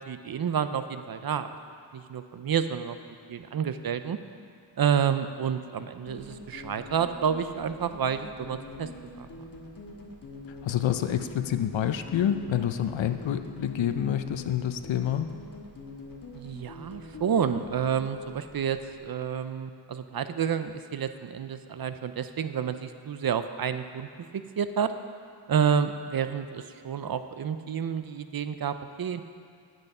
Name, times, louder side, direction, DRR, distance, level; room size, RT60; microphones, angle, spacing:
voice 1, 0.1-1.5 1.9-3.0 3.3-4.2 4.8-8.9 9.2-9.3 16.3-24.1 24.3-24.9 25.5-29.2, right 7 dB, 55° right, 10 dB, 0.6 m, -29 dB
sound 1, 6.1-19.0, left 2 dB, 50° left, 1.3 m, -44 dB
voice 2, 10.6-15.3, left 10 dB, 85° left, 9 dB, 0.7 m, -28 dB
10.5 x 8.1 x 5.4 m, 2.4 s
wide cardioid pair, 110°, 44 cm